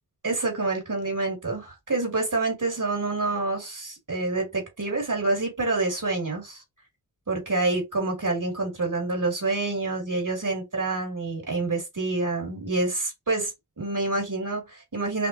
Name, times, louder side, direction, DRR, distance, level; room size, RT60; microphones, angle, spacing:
voice 1, 0.2-6.6 7.3-15.3, right 3 dB, 50° right, 2.5 m, -27 dB
5.8 x 2.7 x 2.7 m
cardioid pair, 45°, 40 cm